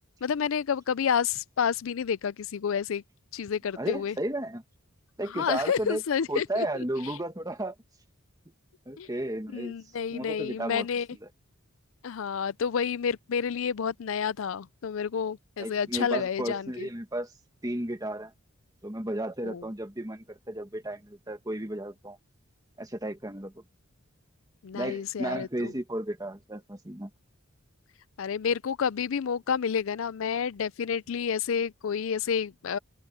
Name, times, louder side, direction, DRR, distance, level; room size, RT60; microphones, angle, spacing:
voice 1, 0.2-3.0 3.3-4.2 5.3-6.7 7.0-7.1 9.0-9.1 9.5-11.1 12.0-16.9 19.4-19.7 24.6-25.7 28.2-32.8, left 7 dB, 70° left, 0.4 m, -29 dB
voice 2, 3.8-4.6 5.2-6.0 6.3-7.7 8.9-9.7 10.1-10.9 11.2-11.3 15.6-17.3 17.6-18.3 18.8-22.2 22.8-23.6 24.7-27.1, right 1 dB, 15° right, 1.6 m, -33 dB
open air
head